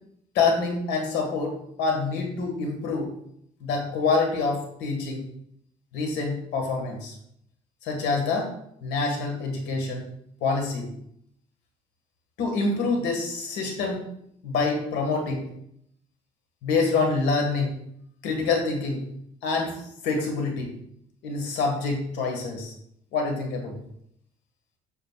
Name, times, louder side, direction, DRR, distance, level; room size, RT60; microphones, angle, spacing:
voice 1, 0.3-3.1 3.6-5.2 5.9-7.1 7.8-8.5 8.8-10.1 10.4-10.9 12.4-14.0 14.4-15.4 16.6-17.7 18.2-19.0 19.4-20.7 21.2-22.7 23.1-23.8, left 4 dB, 90° left, 2 dB, 2.1 m, -26 dB
9.1 x 6.6 x 2.5 m, 0.71 s
cardioid pair, 110°, 17 cm